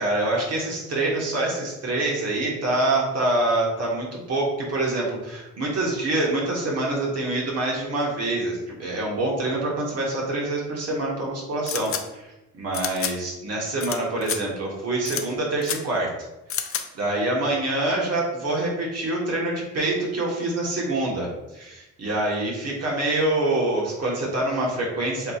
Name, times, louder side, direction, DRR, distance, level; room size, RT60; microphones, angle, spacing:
voice 1, 0.0-16.1 16.6-16.7 16.9-25.3, right 2 dB, 55° right, -3 dB, 1.4 m, -26 dB
sound 1, 11.7-12.0 12.7-13.1 13.8-14.0 14.2-14.4 15.0-15.2 15.6-15.8 16.5-16.8, left 8 dB, 45° left, 0.5 m, -28 dB
7.3 x 2.9 x 2.4 m, 0.95 s
cardioid pair, 90°, 30 cm